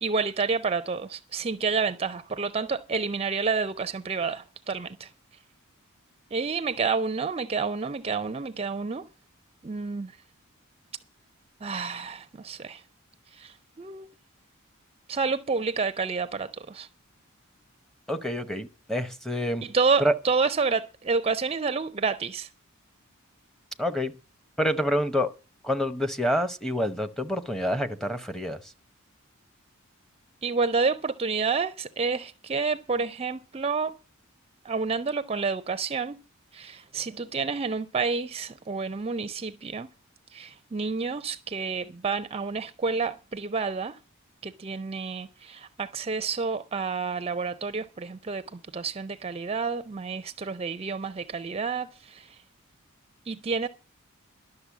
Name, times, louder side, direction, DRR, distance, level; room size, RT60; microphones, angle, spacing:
voice 1, 0.0-5.1 6.3-9.0 9.6-10.1 11.6-12.8 13.4-14.1 15.1-16.9 19.7-22.5 30.4-34.0 34.6-36.2 36.5-39.9 40.3-44.0 44.4-52.2 53.3-53.7, right 4 dB, 30° right, 0.5 m, -29 dB
voice 2, 18.1-19.6 20.0-20.1 23.8-24.1 24.6-25.3 25.6-28.6, equal, ahead, 0.9 m, -27 dB
12.0 x 6.7 x 8.3 m
head